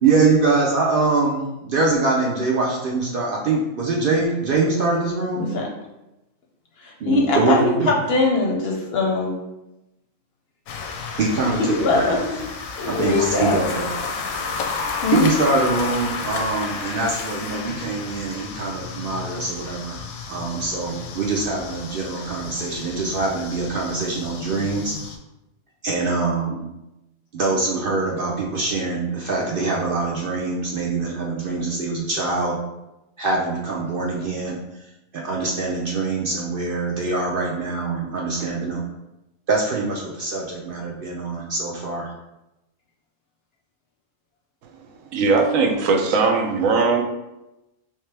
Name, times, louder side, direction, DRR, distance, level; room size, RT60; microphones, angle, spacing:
voice 1, 0.0-5.4 7.0-7.9 11.2-12.1 12.9-13.9 15.1-20.0 20.3-24.9 25.8-26.6 27.3-32.6 33.2-34.6 35.1-38.8 39.5-42.1, right 3 dB, 60° right, -2 dB, 0.6 m, -23 dB
voice 2, 6.8-9.3 11.6-12.2 12.8-13.6 15.0-15.3, left 3 dB, 60° left, -1 dB, 0.7 m, -21 dB
sound 1, 10.7-25.2, left 4 dB, 90° left, 1.0 m, -32 dB
voice 3, 45.1-47.0, right 4 dB, 80° right, 4 dB, 1.0 m, -19 dB
3.2 x 3.2 x 3.2 m, 0.94 s
omnidirectional pair, 1.4 m